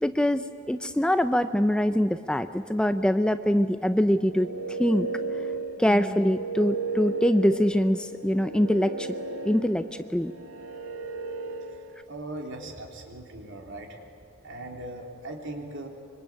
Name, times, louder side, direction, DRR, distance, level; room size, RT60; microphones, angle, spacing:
voice 1, 0.0-4.5 4.8-5.1 5.8-9.1 9.4-9.9 10.1-10.3, equal, 5° left, 10 dB, 0.6 m, -23 dB
sound 1, 4.2-12.0, right 3 dB, 85° right, 1.6 m, -35 dB
voice 2, 12.1-14.0 14.4-15.9, right 1 dB, 60° right, 1 dB, 3.8 m, -39 dB
25.0 x 24.5 x 8.7 m, 2.5 s
head